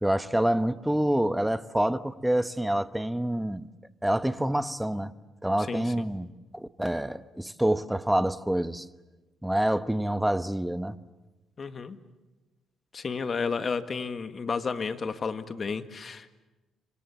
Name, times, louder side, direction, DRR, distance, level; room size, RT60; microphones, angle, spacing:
voice 1, 0.0-3.7 4.0-5.1 5.4-8.9 9.4-11.0, right 1 dB, 5° right, 1.1 m, -27 dB
voice 2, 5.6-6.1 11.6-12.0 12.9-16.4, left 5 dB, 40° left, 1.8 m, -32 dB
30.0 x 25.5 x 7.2 m
cardioid pair, 90°, 0 cm